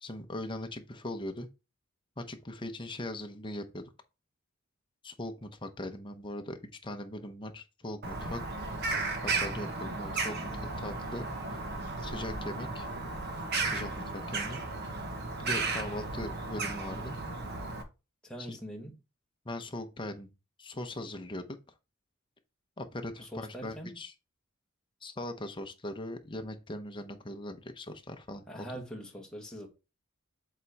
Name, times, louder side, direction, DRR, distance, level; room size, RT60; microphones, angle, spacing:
voice 1, 0.0-1.5 2.2-3.8 5.0-8.4 9.2-11.6 12.0-12.9 13.6-14.6 15.4-17.1 18.5-18.6 19.4-20.3 20.6-21.5 22.8-24.1 25.0-28.7, left 1 dB, 25° left, 0.8 m, -40 dB
Bird vocalization bird call bird song, 8.0-17.8, right 3 dB, 55° right, 1.2 m, -35 dB
voice 2, 18.2-18.9 23.2-24.0 28.5-29.7, equal, 5° left, 1.4 m, -43 dB
7.3 x 4.1 x 3.4 m
head